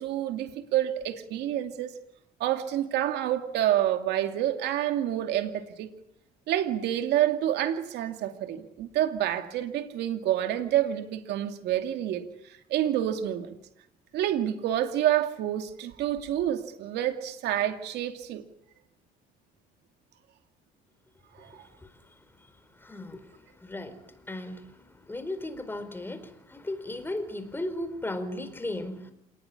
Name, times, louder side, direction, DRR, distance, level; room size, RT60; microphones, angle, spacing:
voice 1, 0.0-1.9 2.4-5.9 6.5-13.6 14.1-18.4 21.4-21.7, right 12 dB, 80° right, 6 dB, 2.6 m, -28 dB
voice 2, 22.8-23.2 23.6-23.9 24.3-24.6 25.1-29.1, left 1 dB, 10° left, 11 dB, 4.6 m, -35 dB
28.0 x 19.5 x 10.0 m, 0.80 s
cardioid pair, 110°, 17 cm